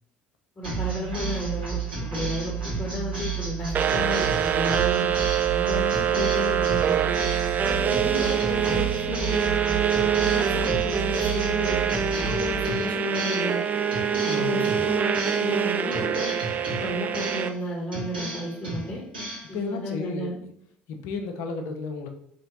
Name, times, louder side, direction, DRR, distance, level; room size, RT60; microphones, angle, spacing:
voice 1, 0.6-5.1 5.5-7.1 7.6-9.6 10.2-13.6 14.3-16.3 16.7-19.0 19.5-20.3, left 1 dB, 25° left, -2 dB, 1.3 m, -33 dB
sound 1, 0.6-13.6 13.9-15.6 15.9-17.6 17.9-19.5, right 4 dB, 80° right, 1.8 m, -32 dB
sound 2, 3.7-17.5, right 8 dB, 35° right, 0.3 m, -25 dB
voice 2, 14.2-14.8 19.5-20.5 20.9-22.1, left 4 dB, 55° left, 5 dB, 0.7 m, -33 dB
4.3 x 2.9 x 3.9 m, 0.68 s
figure-of-eight pair, 60°, 5 cm